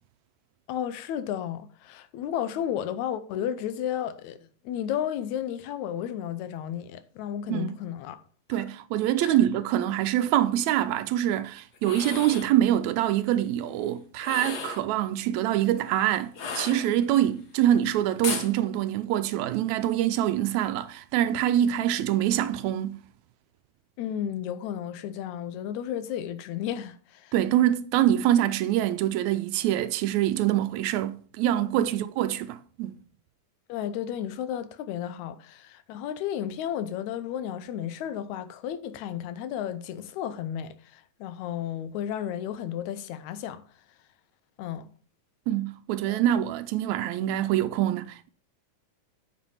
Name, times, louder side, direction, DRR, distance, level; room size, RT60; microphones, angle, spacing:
voice 1, 0.7-8.2 8.5-8.6 9.2-9.4 24.0-27.3 31.8-31.9 32.3-32.4 33.7-43.6 44.6-44.9 46.1-46.2, left 10 dB, 80° left, 2.1 m, -33 dB
voice 2, 8.5-23.0 27.3-33.0 45.5-48.3, right 12 dB, 80° right, 1.8 m, -25 dB
sound 1, 11.7-12.5 14.2-14.9 16.3-17.2 18.2-18.5, left 5 dB, 50° left, 1.1 m, -34 dB
8.8 x 6.1 x 5.6 m
omnidirectional pair, 3.4 m